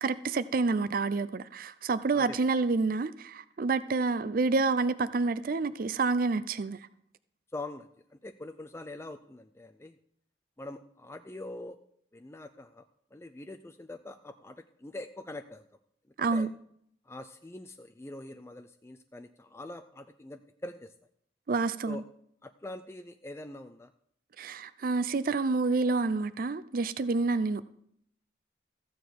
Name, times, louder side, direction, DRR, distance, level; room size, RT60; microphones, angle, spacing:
voice 1, 0.0-6.8 16.2-16.5 21.5-22.0 24.4-27.6, right 3 dB, 50° right, 0.4 m, -28 dB
voice 2, 7.5-10.0 10.6-11.8 12.1-12.8 13.1-15.6 16.2-16.5 17.1-20.9 21.9-22.0 22.4-23.9, left 2 dB, 15° left, 0.4 m, -44 dB
14.5 x 9.1 x 4.7 m
head